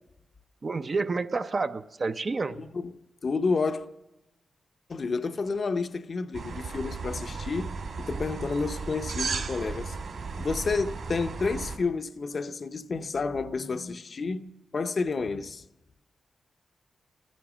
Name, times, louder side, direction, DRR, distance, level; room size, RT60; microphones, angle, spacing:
voice 1, 0.6-2.6, right 4 dB, 35° right, 0.5 m, -29 dB
voice 2, 2.5-2.9 3.2-3.9 4.9-10.0 10.4-15.6, left 4 dB, 45° left, 0.7 m, -30 dB
sound 1, 6.3-11.8, right 4 dB, 65° right, 2.7 m, -35 dB
15.5 x 14.5 x 6.2 m
wide cardioid pair, 135°, 0 cm